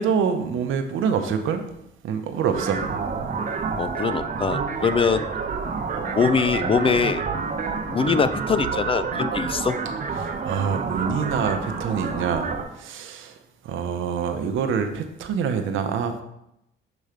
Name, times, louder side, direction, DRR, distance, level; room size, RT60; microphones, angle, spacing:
voice 1, 0.0-1.6 2.0-2.8 10.2-12.5 12.8-13.3 13.6-16.2, right 6 dB, 80° right, 7 dB, 0.8 m, -25 dB
sound 1, 2.5-12.6, right 5 dB, 40° right, 0.9 m, -28 dB
voice 2, 3.8-5.3 6.2-7.2 7.9-9.8, left 5 dB, 30° left, 11 dB, 0.3 m, -22 dB
6.8 x 3.1 x 5.0 m, 0.83 s
cardioid pair, 90°, 20 cm